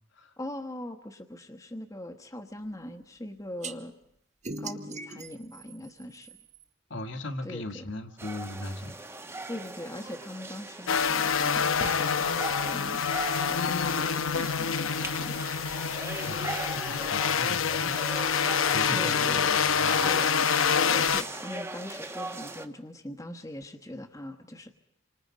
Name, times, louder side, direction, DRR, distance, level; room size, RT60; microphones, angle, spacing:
voice 1, 0.4-3.9 4.6-6.4 7.4-7.8 9.5-13.0 13.5-15.4 18.9-19.5 20.0-20.3 20.8-24.7, left 1 dB, 15° left, 6 dB, 1.2 m, -41 dB
sound 1, 3.6-3.7 4.4-6.6, right 3 dB, 35° right, 1.1 m, -40 dB
voice 2, 6.9-8.9 16.3-18.0 18.7-20.0, left 2 dB, 65° left, 5 dB, 1.8 m, -38 dB
sound 2, 8.2-22.7, right 2 dB, 15° right, 1.0 m, -40 dB
sound 3, 10.9-21.2, left 7 dB, 90° left, 0.8 m, -26 dB
28.0 x 24.5 x 5.1 m, 0.75 s
head